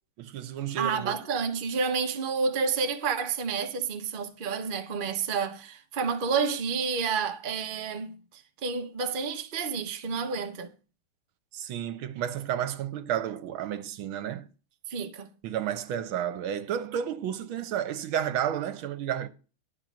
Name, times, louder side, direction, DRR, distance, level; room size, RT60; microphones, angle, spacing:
voice 1, 0.2-1.2 11.5-14.5 15.4-19.3, right 10 dB, 70° right, 1.6 m, -31 dB
voice 2, 0.8-10.7 14.9-15.3, right 5 dB, 90° right, 0.4 m, -30 dB
10.5 x 4.4 x 7.4 m
omnidirectional pair, 2.4 m